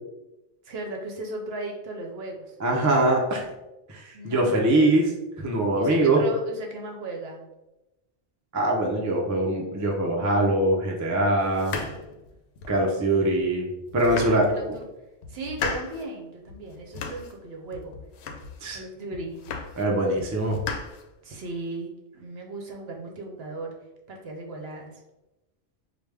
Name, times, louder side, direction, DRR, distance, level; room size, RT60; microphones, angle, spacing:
voice 1, 0.6-3.0 4.1-4.9 5.8-7.4 14.2-14.9 15.3-17.9 18.7-19.4 21.2-23.7 24.1-24.9, right 2 dB, 65° right, 1 dB, 0.9 m, -36 dB
voice 2, 2.6-3.5 3.9-5.1 5.4-6.2 8.5-11.8 12.7-13.7 13.9-14.5 18.6-18.8 19.8-20.6, right 1 dB, 25° right, -1 dB, 0.4 m, -23 dB
sound 1, 11.5-12.9 13.4-13.5 13.9-14.8 15.2-16.1 16.5-17.4 17.7-18.7 19.1-19.9 20.2-21.5, left 5 dB, 70° left, 0.8 m, -36 dB
4.9 x 2.3 x 3.3 m, 0.97 s
omnidirectional pair, 1.2 m